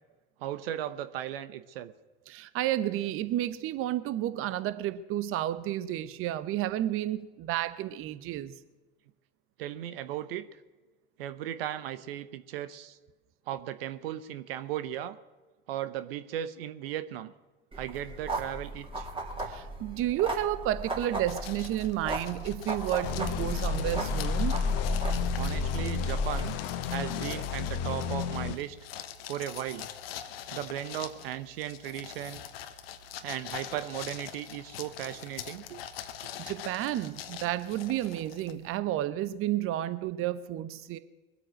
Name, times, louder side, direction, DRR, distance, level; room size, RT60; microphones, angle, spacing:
voice 1, 0.4-1.9 9.6-10.4 11.2-13.0 13.5-15.2 15.7-17.3 17.7-19.1 25.4-26.6 26.9-28.8 29.3-29.9 30.5-32.4 33.2-35.8, right 11 dB, 75° right, 12 dB, 1.0 m, -36 dB
voice 2, 2.3-8.6 19.5-24.5 36.5-41.0, right 13 dB, 45° right, 14 dB, 0.9 m, -31 dB
sound 1, 17.7-26.4, left 1 dB, 20° right, 3.2 m, -33 dB
sound 2, 21.3-38.8, left 9 dB, 75° left, 1.2 m, -44 dB
sound 3, 23.0-28.6, left 7 dB, 55° left, 1.3 m, -34 dB
22.5 x 8.3 x 6.4 m, 1.2 s
hypercardioid pair, 85°, 29 cm